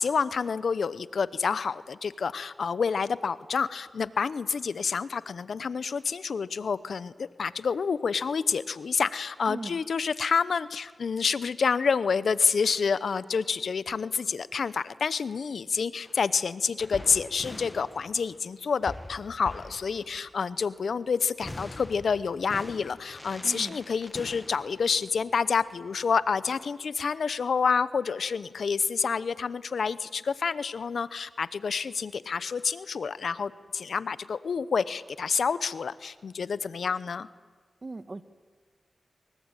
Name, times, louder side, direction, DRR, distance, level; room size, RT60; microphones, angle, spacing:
voice 1, 0.0-37.3, left 5 dB, 75° left, 16 dB, 0.8 m, -28 dB
voice 2, 9.5-9.8 23.4-23.8 37.8-38.2, right 3 dB, 45° right, 12 dB, 1.5 m, -38 dB
sound 1, 16.0-16.2 16.8-18.6 18.8-20.9 21.4-26.6, left 1 dB, 20° left, 1.6 m, -44 dB
23.5 x 23.0 x 9.0 m, 1.5 s
cardioid pair, 50°, 0 cm